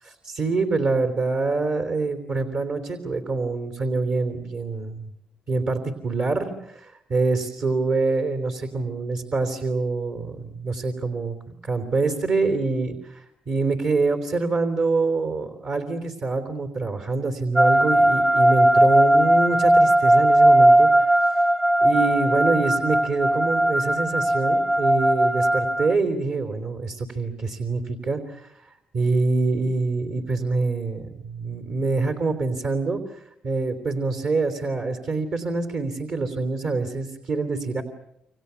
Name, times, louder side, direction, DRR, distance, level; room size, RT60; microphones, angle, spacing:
voice 1, 0.2-5.1 5.5-11.4 11.6-20.9 21.2-21.4 21.8-28.5 28.9-37.8, right 3 dB, 60° right, 6 dB, 3.5 m, -25 dB
sound 1, 17.6-25.9, right 1 dB, 10° right, 0.9 m, -18 dB
28.5 x 25.0 x 7.1 m, 0.79 s
cardioid pair, 95°, 2 cm